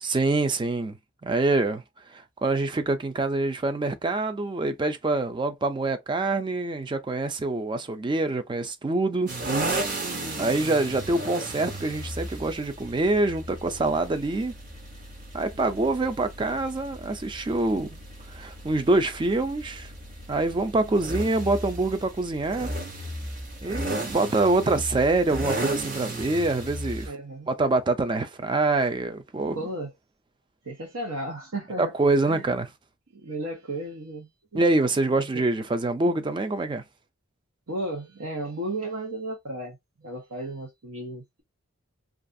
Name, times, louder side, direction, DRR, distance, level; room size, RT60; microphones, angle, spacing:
voice 1, 0.0-1.0 1.2-1.8 2.1-9.3 10.4-14.5 15.3-18.0 18.3-19.9 20.3-22.7 23.6-27.1 27.5-29.6 31.8-32.7 34.5-36.8, right 2 dB, 20° right, 0.3 m, -25 dB
sound 1, 9.3-27.1, right 1 dB, 40° right, 0.7 m, -35 dB
voice 2, 27.0-27.5 29.5-29.9 30.6-31.9 32.2-32.5 33.1-34.6 37.7-41.4, right 1 dB, 85° right, 0.8 m, -34 dB
2.4 x 2.3 x 2.5 m
head